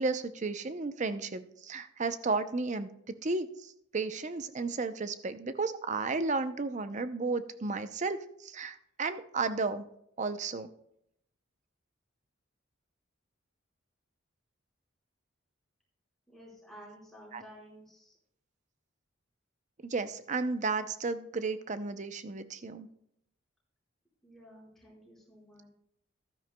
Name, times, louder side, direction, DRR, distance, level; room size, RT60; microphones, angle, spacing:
voice 1, 0.0-9.9 10.2-10.7 17.3-17.4 19.8-22.9, right 3 dB, 35° right, 11 dB, 0.6 m, -33 dB
voice 2, 16.3-18.2 24.2-25.7, equal, ahead, -5 dB, 4.4 m, -53 dB
14.0 x 12.5 x 2.2 m, 0.75 s
head